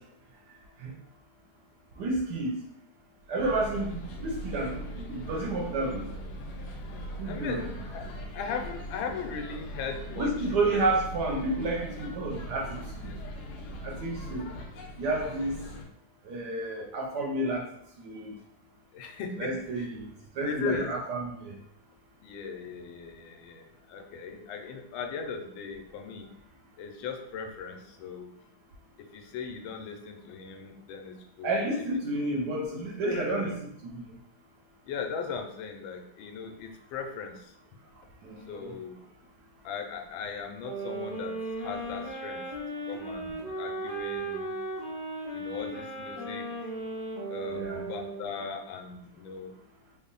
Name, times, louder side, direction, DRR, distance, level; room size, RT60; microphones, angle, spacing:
voice 1, 2.0-2.6 3.3-6.1 7.2-7.6 10.2-13.1 13.8-14.5 15.0-15.5 16.3-17.7 18.0-18.4 19.4-20.1 20.4-21.5 31.4-34.0 38.2-38.7 47.5-47.8, right 2 dB, 70° right, 0 dB, 1.0 m, -30 dB
sound 1, 3.4-15.9, equal, 70° left, 1.0 m, -40 dB
voice 2, 7.3-7.7 7.9-8.0 8.3-10.8 18.9-19.9 20.4-20.9 22.2-26.3 26.8-28.3 29.1-31.6 33.0-33.5 34.9-37.5 38.5-39.0 39.6-42.4 42.9-44.5 45.3-46.7 47.3-49.5, left 5 dB, 85° left, 4 dB, 1.4 m, -38 dB
sound 2, 40.6-48.6, right 2 dB, 10° right, 0.4 m, -36 dB
3.7 x 2.0 x 3.8 m, 0.73 s
omnidirectional pair, 2.1 m